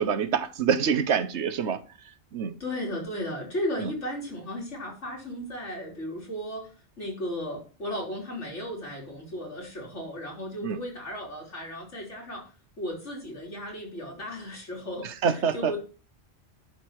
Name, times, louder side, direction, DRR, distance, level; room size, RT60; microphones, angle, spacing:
voice 1, 0.0-1.8 2.3-2.5 3.8-3.9 10.6-10.8 15.0-15.8, right 7 dB, 75° right, 1.1 m, -26 dB
voice 2, 2.6-6.7 7.0-12.4 12.8-15.1 15.5-15.8, left 1 dB, 80° left, 4.5 m, -35 dB
11.5 x 4.7 x 6.2 m
omnidirectional pair, 1.2 m